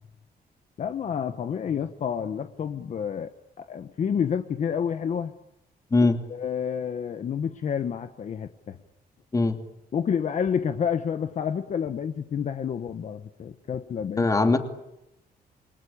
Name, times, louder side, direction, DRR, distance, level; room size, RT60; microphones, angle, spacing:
voice 1, 0.8-3.3 3.6-5.3 6.3-8.8 9.9-14.3, left 7 dB, 50° left, 8 dB, 1.2 m, -29 dB
voice 2, 14.2-14.6, left 3 dB, 20° left, 6 dB, 2.7 m, -20 dB
28.5 x 24.0 x 8.7 m, 0.86 s
wide cardioid pair, 160°, 16 cm